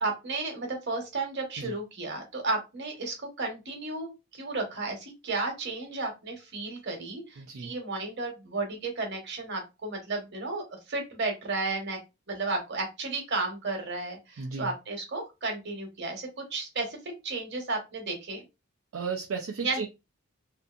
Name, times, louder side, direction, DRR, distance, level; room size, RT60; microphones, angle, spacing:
voice 1, 0.0-12.0 12.3-16.9 17.2-18.4 19.6-19.8, right 3 dB, 55° right, 1.0 m, -33 dB
voice 2, 7.4-7.7 14.4-14.7 18.9-19.9, right 5 dB, 75° right, 0.4 m, -34 dB
2.6 x 2.5 x 2.4 m
head